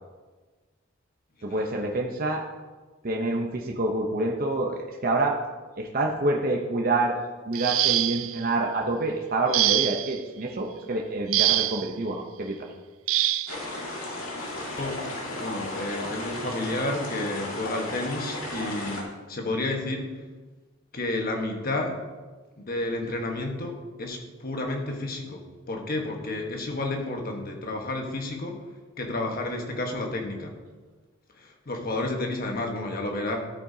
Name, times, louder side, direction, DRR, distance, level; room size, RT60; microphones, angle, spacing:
voice 1, 1.4-2.4 3.0-5.4 5.8-7.2 7.5-12.7, right 2 dB, 45° right, 1 dB, 0.8 m, -27 dB
sound 1, 7.5-8.4 9.5-10.2 11.3-11.9 13.1-13.6 14.8-14.9 15.4-15.6, right 14 dB, 80° right, 0.4 m, -24 dB
sound 2, 13.5-19.0, left 1 dB, 90° left, 2.2 m, -34 dB
voice 2, 13.9-15.1 15.4-20.2 20.9-22.0 22.6-28.6 29.0-30.6 31.3-33.4, left 2 dB, 45° left, 2 dB, 1.3 m, -31 dB
13.0 x 8.7 x 2.8 m, 1.3 s
head